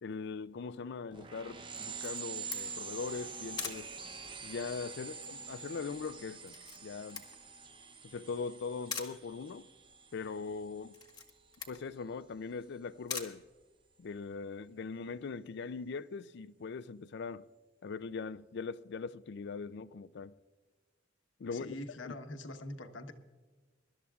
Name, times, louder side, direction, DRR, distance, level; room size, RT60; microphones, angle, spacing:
voice 1, 0.0-3.9 4.4-6.5 6.8-7.2 8.0-9.7 10.1-10.9 11.7-13.4 14.0-17.5 17.8-20.3 21.4-21.8 22.0-22.1, left 4 dB, 60° left, 0.4 m, -41 dB
sound 1, 1.1-11.3, right 5 dB, 25° right, 0.7 m, -46 dB
Camera, 1.8-14.2, left 6 dB, 20° left, 1.4 m, -47 dB
voice 2, 21.5-23.1, left 1 dB, 80° left, 1.1 m, -44 dB
24.0 x 12.0 x 2.4 m
head